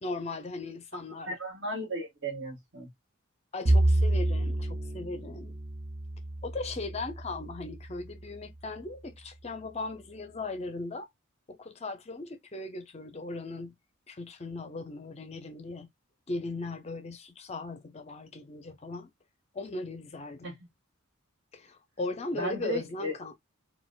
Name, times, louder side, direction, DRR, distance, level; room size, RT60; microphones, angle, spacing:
voice 1, 0.0-1.4 3.5-5.6 6.4-11.1 11.5-13.7 14.1-15.9 16.3-19.1 19.5-20.6 21.5-23.3, left 2 dB, 30° left, 0.4 m, -38 dB
voice 2, 1.2-2.9 20.4-20.5 22.3-23.1, equal, 55° right, 1.7 m, -35 dB
Bowed string instrument, 3.7-8.0, right 1 dB, 35° right, 0.4 m, -28 dB
4.1 x 2.2 x 2.2 m
head